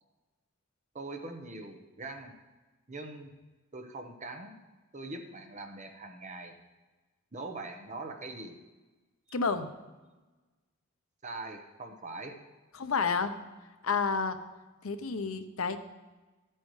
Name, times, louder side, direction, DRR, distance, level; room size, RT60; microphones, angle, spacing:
voice 1, 0.9-2.3 2.9-3.3 3.7-4.5 4.9-6.5 7.3-8.6 11.2-12.4, right 2 dB, 35° right, 5 dB, 1.1 m, -42 dB
voice 2, 9.3-9.7 12.8-13.3 13.8-14.4 14.8-15.8, left 5 dB, 80° left, 9 dB, 0.8 m, -30 dB
13.5 x 8.8 x 3.2 m, 1.2 s
head